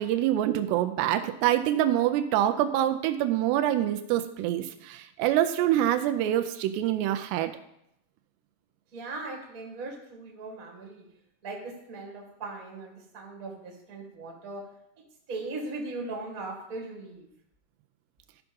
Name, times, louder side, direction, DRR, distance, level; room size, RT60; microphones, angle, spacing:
voice 1, 0.0-7.5, right 12 dB, 85° right, 8 dB, 2.4 m, -25 dB
voice 2, 8.9-11.0 11.4-14.6 15.3-17.3, right 3 dB, 35° right, 0 dB, 1.3 m, -39 dB
13.5 x 5.8 x 5.3 m, 0.78 s
omnidirectional pair, 5.4 m